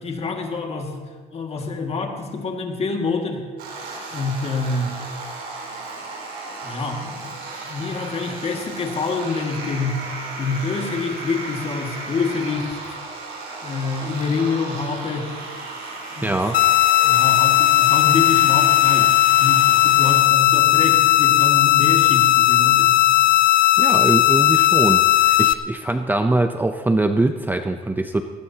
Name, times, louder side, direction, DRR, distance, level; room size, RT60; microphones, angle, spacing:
voice 1, 0.0-3.5 4.1-5.0 6.6-7.3 7.6-10.1 10.4-13.0 13.6-15.3 16.2-16.4 17.0-23.0, left 4 dB, 35° left, 3 dB, 2.1 m, -26 dB
sound 1, 3.6-20.2, right 3 dB, 75° right, 5.3 m, -35 dB
voice 2, 16.2-16.6 23.8-28.2, right 2 dB, 10° right, 7 dB, 0.6 m, -22 dB
sound 2, 16.5-25.5, left 14 dB, 55° left, 0.6 m, -16 dB
19.0 x 18.5 x 2.9 m, 1.5 s
cardioid pair, 110°, 17 cm